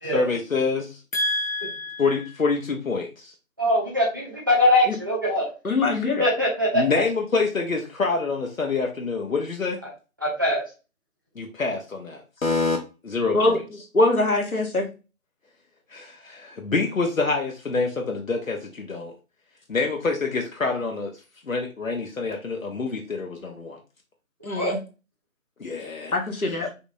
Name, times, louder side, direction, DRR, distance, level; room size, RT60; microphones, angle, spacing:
voice 1, 0.1-3.3 5.9-6.1 6.7-9.8 11.4-12.8 13.0-13.6 15.9-19.1 19.7-21.2 21.5-23.8 25.6-26.1 26.5-26.6, left 4 dB, 70° left, 2 dB, 0.9 m, -26 dB
voice 2, 3.6-5.5 6.2-6.8 10.2-10.6 24.6-24.7, left 1 dB, 15° right, -4 dB, 0.8 m, -22 dB
voice 3, 5.6-6.3 13.3-13.6 13.9-14.9 24.4-24.8 26.1-26.7, left 2 dB, 85° left, 2 dB, 1.4 m, -22 dB
5.3 x 2.9 x 2.6 m, 0.31 s
figure-of-eight pair, 155°, 42 cm